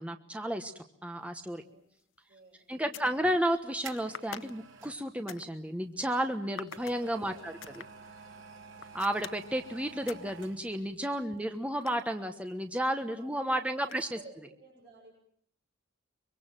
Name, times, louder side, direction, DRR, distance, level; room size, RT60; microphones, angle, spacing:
voice 1, 0.0-1.6 2.7-7.8 8.9-14.2, right 1 dB, 5° right, 6 dB, 1.2 m, -32 dB
sound 1, 2.0-2.2 2.7-3.2 4.1-5.5 6.6-7.0 7.6-7.9 8.8-9.5 10.1-10.3 10.8-12.6 13.8-14.3, left 7 dB, 85° left, 1.0 m, -46 dB
voice 2, 2.3-3.3 7.2-7.5 11.3-11.8 13.2-15.1, right 3 dB, 55° right, -1 dB, 7.0 m, -55 dB
sound 2, 3.2-5.0 6.2-10.9 11.2-11.3, right 5 dB, 80° right, 3.5 m, -50 dB
24.5 x 24.0 x 7.6 m, 0.66 s
head